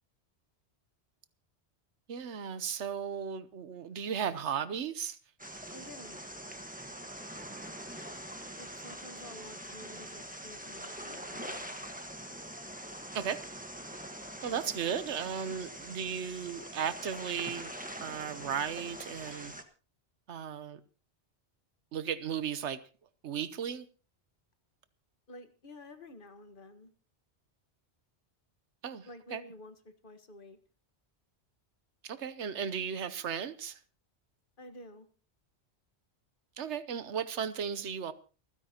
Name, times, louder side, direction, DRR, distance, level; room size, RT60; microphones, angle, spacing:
voice 1, 2.1-5.2 13.1-13.4 14.4-17.7 18.0-19.5 20.3-20.8 21.9-22.8 23.2-23.9 28.8-29.4 32.0-33.8 36.6-38.1, right 7 dB, 90° right, 1.2 m, -35 dB
sound 1, 5.4-19.6, right 1 dB, 5° right, 1.4 m, -44 dB
voice 2, 5.7-6.2 8.6-11.6 25.3-26.9 29.0-30.6 34.6-35.1, left 1 dB, 50° left, 1.6 m, -51 dB
29.0 x 9.7 x 2.9 m
omnidirectional pair, 1.1 m